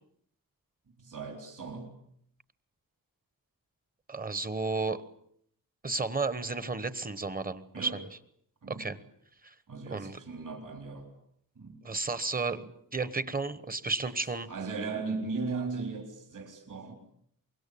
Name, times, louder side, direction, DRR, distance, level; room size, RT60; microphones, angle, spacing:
voice 1, 1.0-1.9 7.7-8.0 8.6-8.9 9.7-11.1 11.6-11.9 14.2-16.9, right 4 dB, 60° right, 4 dB, 3.9 m, -37 dB
voice 2, 4.1-5.0 5.8-7.9 8.7-9.0 9.4-9.5 9.9-10.2 11.8-14.5, right 3 dB, 25° right, 15 dB, 1.2 m, -32 dB
25.0 x 23.0 x 8.6 m, 0.68 s
wide cardioid pair, 175°, 36 cm